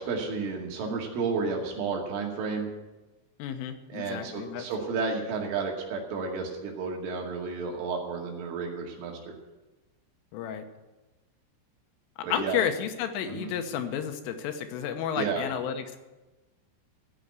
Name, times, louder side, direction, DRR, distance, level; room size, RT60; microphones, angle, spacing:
voice 1, 0.0-2.7 3.9-9.2 12.2-12.6 13.3-13.5 15.2-15.4, right 4 dB, 75° right, 0 dB, 4.7 m, -32 dB
voice 2, 3.4-4.7 10.3-10.7 12.3-16.0, left 8 dB, 90° left, 7 dB, 3.6 m, -31 dB
15.5 x 6.7 x 9.7 m, 1.1 s
omnidirectional pair, 5.7 m